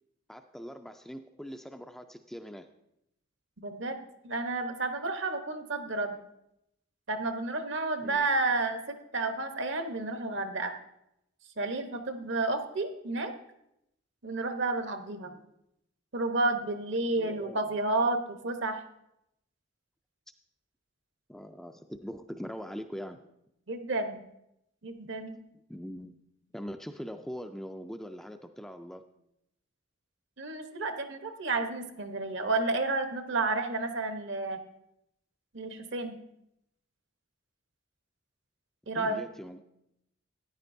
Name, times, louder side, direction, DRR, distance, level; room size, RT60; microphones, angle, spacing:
voice 1, 0.3-2.7 8.0-8.3 17.2-17.7 21.3-23.2 25.7-26.2 26.5-29.0 39.0-39.6, equal, ahead, 6 dB, 0.3 m, -42 dB
voice 2, 3.6-4.0 4.2-6.1 7.1-10.7 11.6-13.3 14.2-15.3 16.1-18.8 23.7-24.2 24.8-25.4 30.4-34.6 35.5-36.2 38.9-39.2, right 2 dB, 65° right, 7 dB, 0.9 m, -31 dB
13.5 x 10.0 x 2.6 m, 0.82 s
head